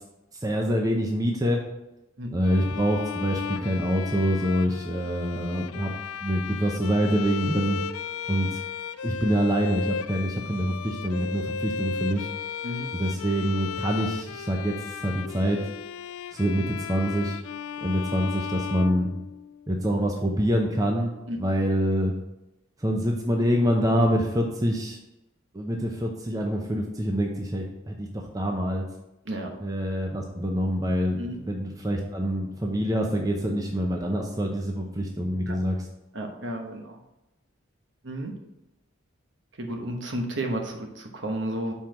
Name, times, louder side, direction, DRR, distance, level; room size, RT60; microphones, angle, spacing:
voice 1, 0.4-1.6 2.3-5.9 6.2-7.8 8.3-8.6 9.0-12.3 12.9-15.6 16.3-17.4 17.8-19.1 19.7-22.1 22.8-25.0 25.5-28.8 29.6-35.9, equal, 15° right, 1 dB, 0.6 m, -26 dB
Bowed string instrument, 2.4-19.7, left 6 dB, 90° left, 0.3 m, -35 dB
voice 2, 36.1-37.0 38.0-38.3 39.6-41.7, right 1 dB, 60° right, 3 dB, 1.1 m, -32 dB
5.6 x 4.5 x 6.3 m, 0.95 s
head